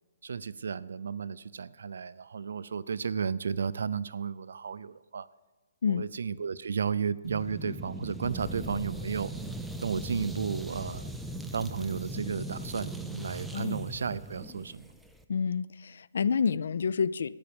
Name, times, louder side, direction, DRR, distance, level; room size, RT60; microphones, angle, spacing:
voice 1, 0.2-5.3 5.9-9.3 9.8-11.1 11.5-14.9, right 6 dB, 70° right, 0.5 m, -33 dB
sound 1, 7.2-15.2, right 1 dB, ahead, 0.4 m, -39 dB
voice 2, 15.3-17.4, left 6 dB, 65° left, 0.4 m, -29 dB
13.5 x 9.7 x 5.2 m
hypercardioid pair, 175°, 0 cm